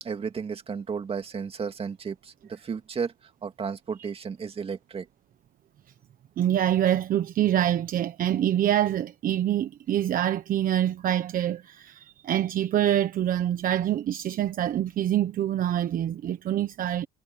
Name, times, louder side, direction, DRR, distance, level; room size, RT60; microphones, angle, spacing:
voice 1, 0.0-3.1 3.4-5.1, right 6 dB, 35° right, 2.4 m, -33 dB
voice 2, 6.4-17.1, right 11 dB, 55° right, 1.2 m, -25 dB
cardioid pair, 110°, 17 cm